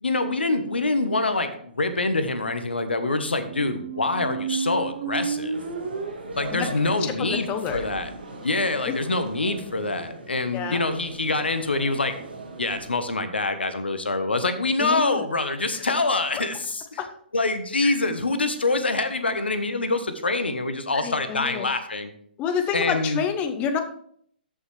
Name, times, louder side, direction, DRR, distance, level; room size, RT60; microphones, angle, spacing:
voice 1, 0.0-5.6 6.3-7.5 7.7-8.1 8.4-12.2 12.6-16.8 17.3-22.1 22.7-23.2, left 2 dB, 90° left, 10 dB, 1.2 m, -25 dB
sound 1, 3.4-9.3, right 5 dB, 50° right, 1.9 m, -33 dB
sound 2, 5.5-12.9, right 3 dB, 90° right, 3.3 m, -40 dB
voice 2, 7.0-7.8 8.8-8.9 10.5-10.8 14.8-15.2 15.7-15.8 17.0-17.1 17.8-17.9 20.9-21.7 22.4-23.8, left 7 dB, 25° left, 8 dB, 0.9 m, -28 dB
14.0 x 5.7 x 3.3 m, 0.64 s
hypercardioid pair, 135°, 6 cm